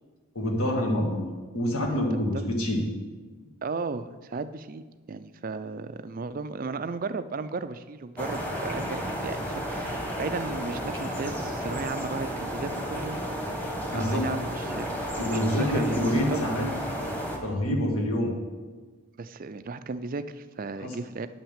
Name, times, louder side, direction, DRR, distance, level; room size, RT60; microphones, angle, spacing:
voice 1, 0.4-1.2 1.5-2.8 13.9-14.3 15.2-16.7 17.4-18.3 20.8-20.9, equal, 80° left, 1 dB, 1.8 m, -26 dB
voice 2, 3.6-13.2 13.9-16.4 19.2-21.3, right 4 dB, 40° right, 12 dB, 0.4 m, -35 dB
sound 1, 8.2-17.4, equal, 5° left, 1.1 m, -32 dB
9.2 x 5.8 x 7.3 m, 1.4 s
head